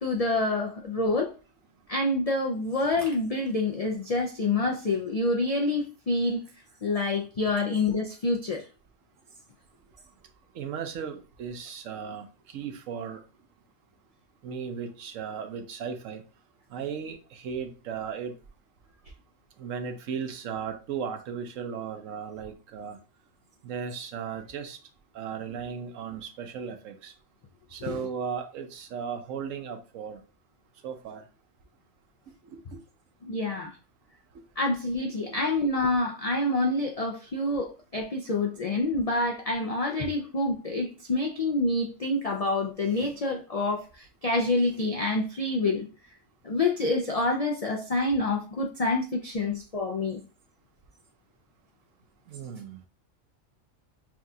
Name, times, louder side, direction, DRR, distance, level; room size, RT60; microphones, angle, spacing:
voice 1, 0.0-1.3 1.9-6.4 6.8-8.6 27.9-28.0 33.3-33.8 34.6-45.9 46.4-50.2, left 2 dB, 70° left, 0.3 m, -27 dB
voice 2, 10.5-12.3 12.5-13.2 14.4-16.2 16.7-18.3 19.6-23.0 23.6-24.8 25.1-27.1 27.7-30.2 30.8-31.2 32.5-32.8 52.3-52.8, right 7 dB, 80° right, 1.1 m, -36 dB
5.9 x 2.4 x 2.7 m
omnidirectional pair, 1.3 m